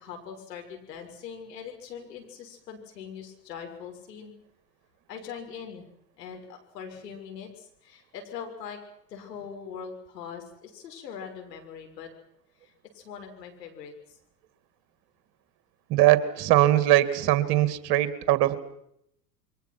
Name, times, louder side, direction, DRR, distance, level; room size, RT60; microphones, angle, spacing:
voice 1, 0.0-4.3 5.1-5.9 6.2-8.8 9.1-12.1 12.6-14.2, left 7 dB, 75° left, 3 dB, 6.5 m, -42 dB
voice 2, 15.9-18.6, right 14 dB, 45° right, 13 dB, 2.4 m, -21 dB
28.5 x 23.5 x 6.1 m, 0.75 s
hypercardioid pair, 85°, 50 cm